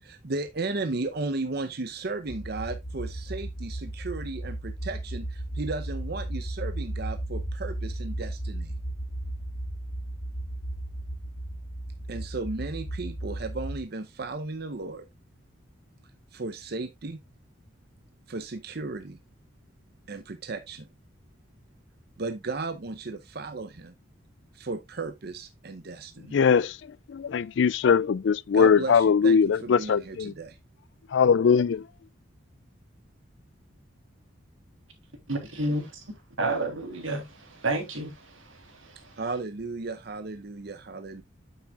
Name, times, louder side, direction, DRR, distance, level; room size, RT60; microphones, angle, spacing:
voice 1, 0.0-8.7 12.1-15.0 16.3-17.2 18.3-19.2 20.1-20.9 22.2-23.9 24.5-26.4 28.5-30.6 39.2-41.2, right 3 dB, 55° right, 0.7 m, -35 dB
sound 1, 2.3-13.8, right 1 dB, 85° left, 2.9 m, -35 dB
voice 2, 26.3-26.8 27.1-30.3 31.1-31.8, left 6 dB, 65° left, 0.3 m, -21 dB
voice 3, 35.3-36.1 36.4-39.2, right 2 dB, 90° right, 3.2 m, -31 dB
9.0 x 7.3 x 2.4 m
head